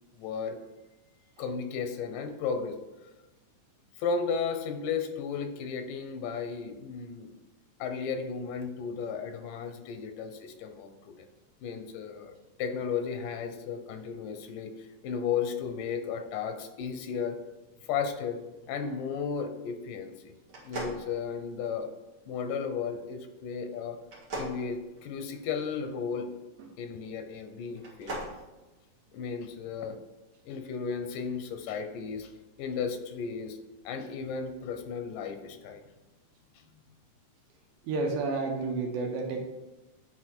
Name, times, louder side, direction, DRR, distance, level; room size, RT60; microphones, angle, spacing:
voice 1, 0.2-0.6 1.4-2.8 4.0-7.3 7.8-11.3 11.6-12.3 12.6-14.7 15.0-17.4 17.9-18.4 18.7-20.3 20.7-21.9 22.3-24.0 24.3-26.3 26.8-28.2 29.1-30.0 30.5-32.3 32.6-33.6 33.9-35.8 36.7-36.9, left 6 dB, 90° left, 7 dB, 2.4 m, -34 dB
sound 1, 20.5-21.9 24.0-25.6 27.7-28.4, right 1 dB, 45° right, 2.3 m, -39 dB
voice 2, 37.9-39.4, right 3 dB, 75° right, 2 dB, 2.4 m, -30 dB
9.2 x 4.2 x 4.5 m, 1.1 s
omnidirectional pair, 3.6 m